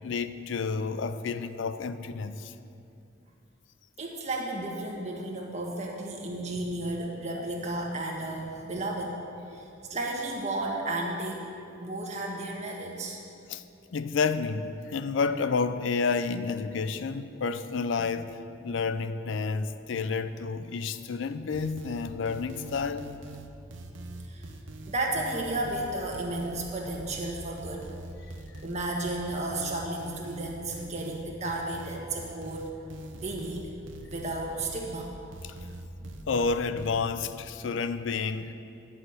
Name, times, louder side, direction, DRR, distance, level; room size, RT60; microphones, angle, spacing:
voice 1, 0.0-2.5 7.4-7.5 13.5-13.6 13.9-23.1 35.4-35.6 36.3-38.5, left 4 dB, 70° left, 12 dB, 0.4 m, -30 dB
voice 2, 4.0-9.2 9.5-11.5 11.8-13.2 18.0-18.1 18.7-18.8 24.2-24.5 24.9-27.9 28.6-32.7 33.1-33.7 34.0-35.2 36.0-36.2, right 2 dB, 35° right, -1 dB, 1.5 m, -33 dB
sound 1, 21.5-37.0, right 2 dB, 75° right, 0.8 m, -43 dB
10.5 x 5.8 x 8.0 m, 2.6 s
head